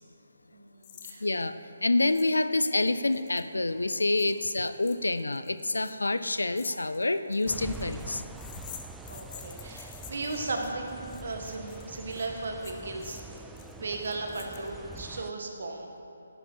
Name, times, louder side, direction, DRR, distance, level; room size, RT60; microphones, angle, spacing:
voice 1, 0.5-1.3 9.0-13.2 13.8-16.0, right 3 dB, 60° right, 3 dB, 1.5 m, -36 dB
sound 1, 0.8-1.2 1.4-1.5 2.1-2.4 2.7-15.0, left 9 dB, 30° left, 0.9 m, -49 dB
voice 2, 1.2-8.2, left 2 dB, 80° left, 12 dB, 0.5 m, -27 dB
sound 2, 7.5-15.3, right 3 dB, 5° right, 0.3 m, -45 dB
11.0 x 9.8 x 4.5 m, 3.0 s
figure-of-eight pair, 145°, 0 cm